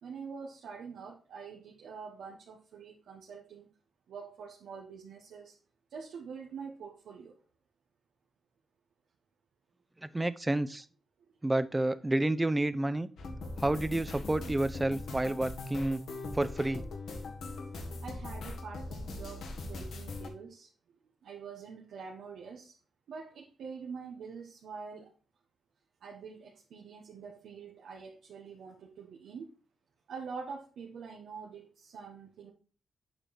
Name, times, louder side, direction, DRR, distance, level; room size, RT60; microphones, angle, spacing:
voice 1, 0.0-3.7 4.1-5.6 5.9-7.4 11.2-11.3 18.0-22.7 23.1-25.1 26.0-29.5 30.1-32.5, right 5 dB, 90° right, -1 dB, 1.2 m, -45 dB
voice 2, 10.0-10.9 11.4-13.1 13.6-16.0 16.3-16.8, right 1 dB, 15° right, 14 dB, 0.6 m, -30 dB
sound 1, 13.2-20.3, left 2 dB, 80° left, 1.7 m, -40 dB
7.9 x 5.0 x 4.2 m, 0.37 s
cardioid pair, 105°, 0 cm